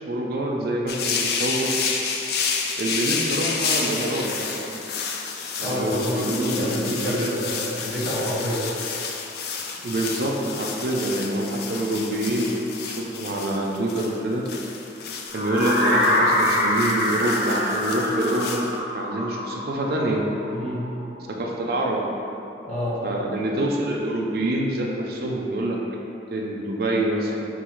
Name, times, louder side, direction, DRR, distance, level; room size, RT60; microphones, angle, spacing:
voice 1, 0.0-1.7 2.7-4.7 5.6-7.3 9.8-12.5 12.8-14.4 15.3-18.6 18.9-20.3 21.3-22.0 23.0-25.8 26.3-27.5, right 1 dB, 55° right, -2 dB, 0.4 m, -26 dB
sound 1, 0.9-18.7, left 5 dB, 55° left, 0.3 m, -30 dB
voice 2, 5.6-8.7 20.5-20.9 22.6-23.0, equal, 35° left, -9 dB, 1.2 m, -28 dB
sound 2, 15.3-21.2, left 1 dB, 85° left, 0.8 m, -25 dB
4.6 x 2.3 x 4.4 m, 2.9 s
head